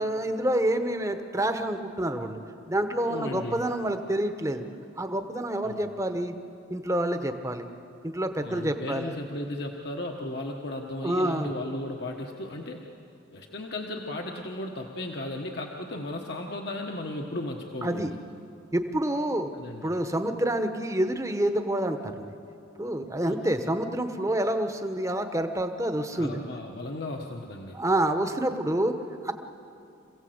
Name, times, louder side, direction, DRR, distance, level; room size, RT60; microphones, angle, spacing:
voice 1, 0.0-2.4 2.7-4.6 5.0-6.3 6.7-7.7 8.0-9.1 11.0-11.5 17.8-18.1 18.7-19.5 19.8-22.3 22.8-26.4 27.7-28.9 29.2-29.3, right 1 dB, 15° right, 7 dB, 1.0 m, -28 dB
voice 2, 3.0-3.6 5.6-5.8 8.4-12.8 13.3-18.2 19.5-19.9 23.2-23.4 26.1-27.8, left 1 dB, 55° left, 1 dB, 1.2 m, -35 dB
27.0 x 16.5 x 7.9 m, 2.7 s
head